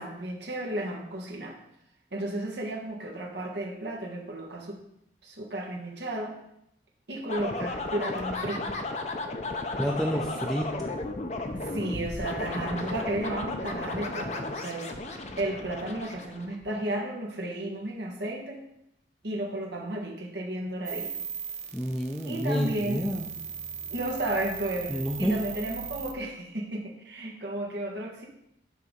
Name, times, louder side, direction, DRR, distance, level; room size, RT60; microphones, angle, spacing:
voice 1, 0.0-1.5 2.1-4.8 5.2-6.3 7.1-8.7 11.6-14.9 15.4-18.6 19.2-21.1 22.3-23.0 23.9-28.2, right 1 dB, 75° right, -1 dB, 1.5 m, -33 dB
sound 1, 7.3-16.8, left 2 dB, 40° left, 0.7 m, -34 dB
voice 2, 9.8-11.0 21.7-23.3 24.9-25.4, equal, ahead, -1 dB, 0.6 m, -29 dB
sound 2, 20.9-26.1, right 7 dB, 40° right, 0.6 m, -38 dB
9.2 x 3.7 x 5.3 m, 0.79 s
head